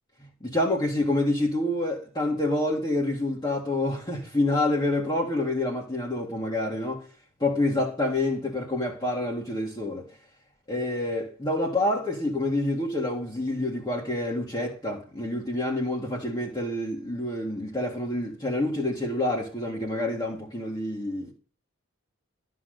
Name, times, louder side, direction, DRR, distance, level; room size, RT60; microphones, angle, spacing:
voice 1, 0.4-7.1 7.4-10.1 10.7-21.3, left 1 dB, 20° left, 2.0 m, -27 dB
13.0 x 6.0 x 6.7 m
head